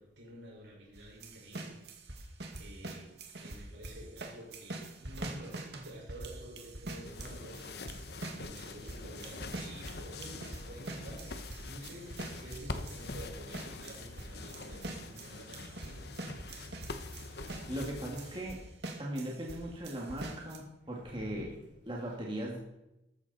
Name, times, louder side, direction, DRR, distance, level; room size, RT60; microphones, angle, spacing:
voice 1, 0.0-1.8 2.6-8.1 8.4-16.2 21.0-22.1, right 1 dB, 80° right, 5.5 m, -50 dB
sound 1, 1.0-19.6 19.8-20.6, right 2 dB, 60° right, 2.1 m, -44 dB
sound 2, 7.0-18.4, left 3 dB, 55° left, 1.0 m, -45 dB
voice 2, 17.7-18.6 19.0-21.5 21.9-22.6, right 1 dB, 25° right, 2.2 m, -38 dB
14.0 x 12.5 x 4.3 m
head